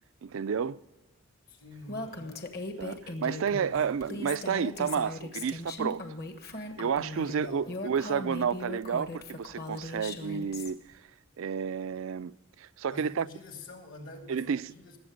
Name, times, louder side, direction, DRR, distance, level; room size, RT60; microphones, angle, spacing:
voice 1, 0.2-0.8 2.8-6.0 6.8-10.8 11.4-12.3 12.6-13.3 14.3-14.7, right 6 dB, 75° right, 0.4 m, -31 dB
voice 2, 1.5-2.5 3.4-4.0 7.2-7.8 12.9-15.0, left 2 dB, 70° left, 3.0 m, -46 dB
Female speech woman speaking, 1.9-10.7, left 2 dB, 50° left, 1.4 m, -39 dB
20.0 x 7.8 x 5.1 m
head